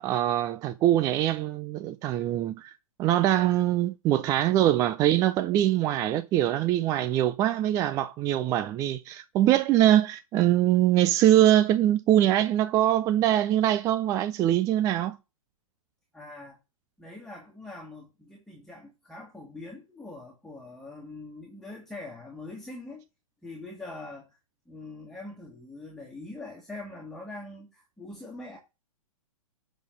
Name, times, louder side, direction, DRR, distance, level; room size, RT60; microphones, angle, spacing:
voice 1, 0.0-2.7 3.0-15.2, right 12 dB, 20° right, 0.4 m, -23 dB
voice 2, 16.1-16.6 17.0-23.1 23.4-24.4 24.7-28.6, left 2 dB, ahead, 1.8 m, -43 dB
11.5 x 4.0 x 6.3 m
figure-of-eight pair, 110°, 18 cm